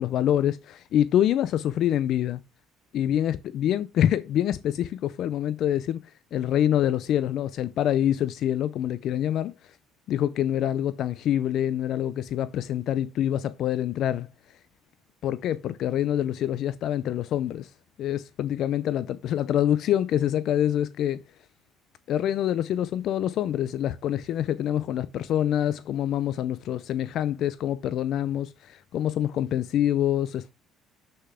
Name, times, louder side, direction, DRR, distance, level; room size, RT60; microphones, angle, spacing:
voice 1, 0.0-2.4 2.9-6.0 6.3-9.8 10.1-14.3 15.2-17.7 18.0-21.2 22.1-30.5, left 11 dB, 55° left, 0.5 m, -26 dB
7.9 x 6.6 x 3.6 m
cardioid pair, 135°, 0 cm